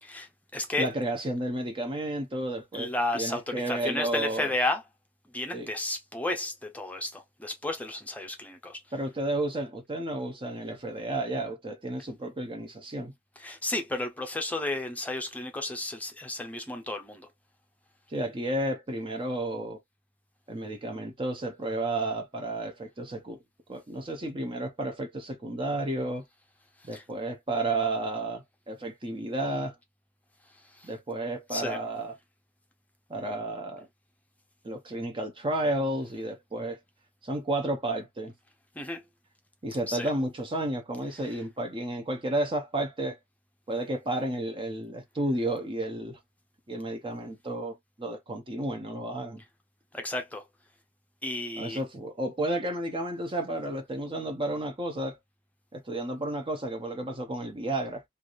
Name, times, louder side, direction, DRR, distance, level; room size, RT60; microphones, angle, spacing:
voice 1, 0.0-0.9 2.7-4.8 5.3-8.8 13.4-17.3 26.9-27.0 30.7-30.9 31.5-31.8 38.7-39.0 39.9-40.1 49.9-50.4 51.2-51.8, left 2 dB, 10° left, 0.7 m, -32 dB
voice 2, 0.8-4.5 5.5-5.7 8.9-13.1 18.1-19.8 20.5-23.4 23.7-26.2 26.8-29.8 30.8-32.1 33.1-33.9 34.6-36.8 37.2-38.3 39.6-43.2 43.7-46.2 46.7-49.4 51.6-55.2 55.7-58.0, right 1 dB, 30° right, 0.7 m, -32 dB
3.3 x 2.6 x 2.4 m
head